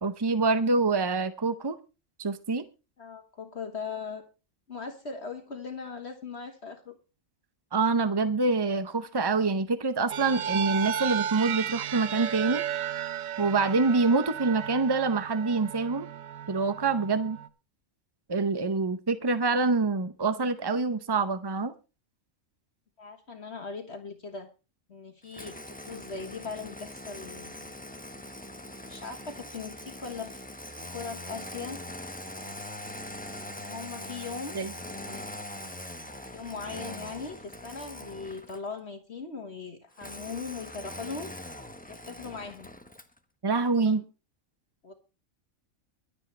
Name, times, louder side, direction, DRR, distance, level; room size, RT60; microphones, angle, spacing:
voice 1, 0.0-1.8 2.2-2.6 7.7-12.6 13.4-16.1 16.5-17.4 18.3-21.7 34.5-34.7 43.4-44.0, right 3 dB, 30° right, 11 dB, 0.4 m, -26 dB
voice 2, 3.0-4.2 4.7-7.0 23.0-24.5 24.9-27.7 28.9-30.4 30.9-31.8 33.6-34.6 34.8-35.2 36.3-41.3 41.9-42.7 43.8-44.0 44.8-44.9, left 5 dB, 50° left, 5 dB, 1.7 m, -39 dB
sound 1, 10.1-17.5, right 9 dB, 75° right, 1.3 m, -34 dB
Engine starting, 25.3-38.7 40.0-43.2, left 1 dB, 5° left, 1.0 m, -42 dB
23.5 x 8.1 x 3.2 m, 0.32 s
omnidirectional pair, 1.4 m